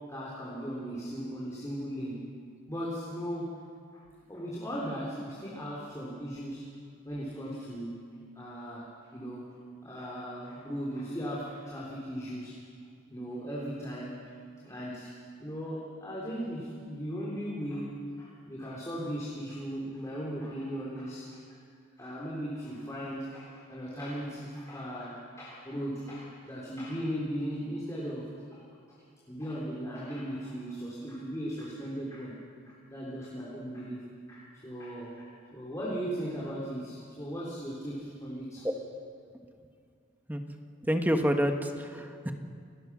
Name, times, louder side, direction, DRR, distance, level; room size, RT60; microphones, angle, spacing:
voice 1, 0.0-2.3 2.7-3.6 3.9-6.7 7.1-8.0 8.4-12.6 13.1-14.3 14.6-21.6 22.0-29.0 29.3-32.4 32.7-38.7, equal, 15° left, -6 dB, 3.6 m, -38 dB
voice 2, 40.8-42.3, equal, 10° right, 5 dB, 1.3 m, -28 dB
29.5 x 18.5 x 6.2 m, 2.3 s
head